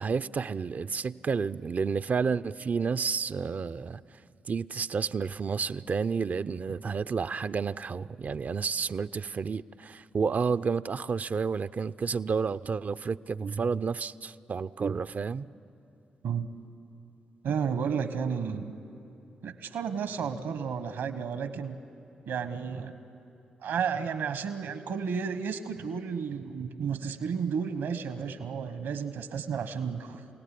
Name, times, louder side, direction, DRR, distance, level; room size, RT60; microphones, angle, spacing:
voice 1, 0.0-4.0 4.5-15.5, right 5 dB, 50° right, 13 dB, 0.5 m, -30 dB
voice 2, 17.4-18.7 19.4-21.8 22.3-22.9 23.6-30.2, right 6 dB, 75° right, 11 dB, 1.2 m, -32 dB
29.0 x 17.5 x 8.4 m, 2.8 s
hypercardioid pair, 40°, 4 cm